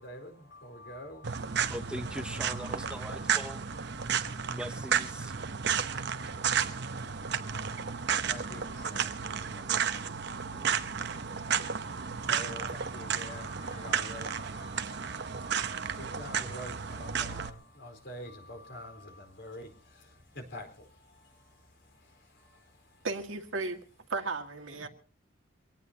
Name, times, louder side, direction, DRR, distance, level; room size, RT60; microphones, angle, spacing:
voice 1, 0.0-1.7 2.1-3.4 7.8-8.0 8.3-9.7 11.9-19.7 20.3-20.7 24.7-24.9, left 1 dB, 60° left, 4 dB, 4.5 m, -46 dB
sound 1, 1.2-17.5, right 7 dB, 60° right, 0.9 m, -33 dB
voice 2, 1.7-3.6 4.5-5.3 10.5-11.3, equal, 5° right, 7 dB, 0.7 m, -41 dB
voice 3, 23.0-23.8 24.1-24.9, right 3 dB, 80° right, 5 dB, 2.0 m, -34 dB
24.5 x 18.0 x 2.9 m, 0.39 s
head